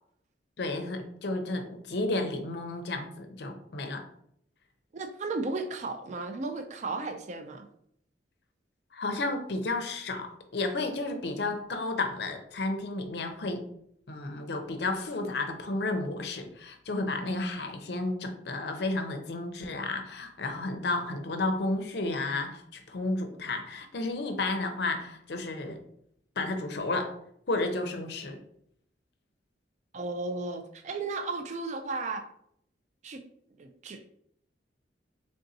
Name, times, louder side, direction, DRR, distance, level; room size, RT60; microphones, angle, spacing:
voice 1, 0.6-4.1 8.9-13.6 14.1-25.8 26.4-27.1 27.5-28.4, left 2 dB, 65° left, 6 dB, 0.6 m, -32 dB
voice 2, 4.9-7.7 29.9-32.2 33.0-33.2 33.6-34.1, right 3 dB, 40° right, 5 dB, 0.3 m, -34 dB
3.8 x 3.4 x 2.7 m, 0.70 s
head